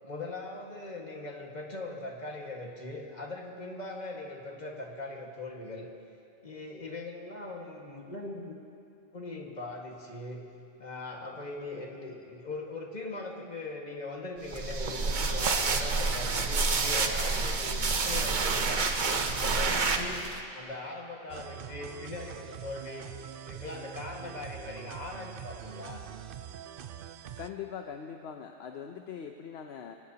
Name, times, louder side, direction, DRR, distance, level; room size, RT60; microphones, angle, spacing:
voice 1, 0.0-5.9 6.4-8.6 9.1-10.4 10.8-20.2 20.5-23.1 23.4-26.1, left 2 dB, 30° left, -1 dB, 1.8 m, -40 dB
sound 1, 14.5-20.4, right 4 dB, 40° right, 0.8 m, -28 dB
sound 2, 21.3-27.5, right 10 dB, 65° right, 0.5 m, -44 dB
voice 2, 27.4-30.0, left 7 dB, 55° left, 4 dB, 0.8 m, -41 dB
26.0 x 17.5 x 2.9 m, 2.5 s
omnidirectional pair, 1.5 m